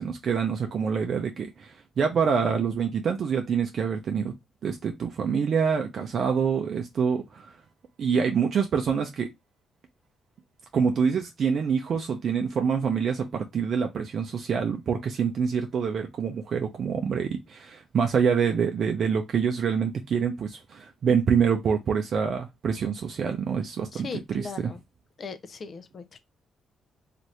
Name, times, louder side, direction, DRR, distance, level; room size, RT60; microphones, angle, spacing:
voice 1, 0.0-4.3 4.6-7.5 8.0-9.3 10.7-24.7, right 6 dB, 55° right, 0.5 m, -26 dB
voice 2, 23.9-24.8 25.2-26.2, left 4 dB, 45° left, 0.5 m, -38 dB
2.7 x 2.5 x 3.1 m
cardioid pair, 90°, 0 cm